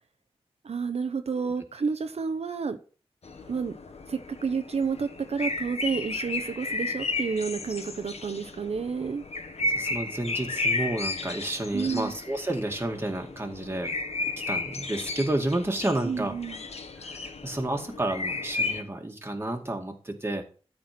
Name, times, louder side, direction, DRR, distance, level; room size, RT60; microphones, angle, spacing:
voice 1, 0.6-2.8 3.5-3.7 4.1-9.2 11.7-12.1 16.0-16.6, right 5 dB, 75° right, 7 dB, 0.9 m, -30 dB
sound 1, 3.2-18.8, left 3 dB, 80° left, 1.4 m, -33 dB
voice 2, 9.6-13.9 14.5-16.3 17.0-20.4, right 1 dB, 20° right, 3 dB, 2.1 m, -30 dB
13.0 x 4.5 x 6.0 m, 0.38 s
wide cardioid pair, 80°, 11 cm